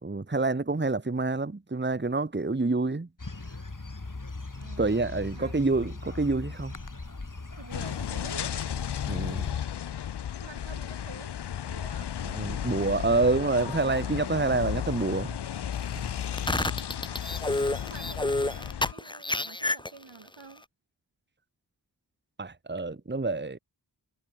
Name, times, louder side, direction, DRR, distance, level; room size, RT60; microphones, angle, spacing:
voice 1, 0.0-3.1 4.8-6.7 9.1-9.6 12.3-15.4 15.9-16.0 22.4-23.6, right 3 dB, 25° right, 1.4 m, -27 dB
sound 1, 3.2-9.5, left 3 dB, 45° left, 6.7 m, -40 dB
voice 2, 4.5-5.5 7.6-8.5 10.4-11.3 11.6-12.1 16.2-17.4 17.8-20.6, right 4 dB, 80° right, 4.6 m, -48 dB
sound 2, 7.7-18.9, left 9 dB, 70° left, 0.6 m, -34 dB
sound 3, 16.2-20.3, left 2 dB, 10° left, 0.6 m, -29 dB
wide cardioid pair, 60°, 43 cm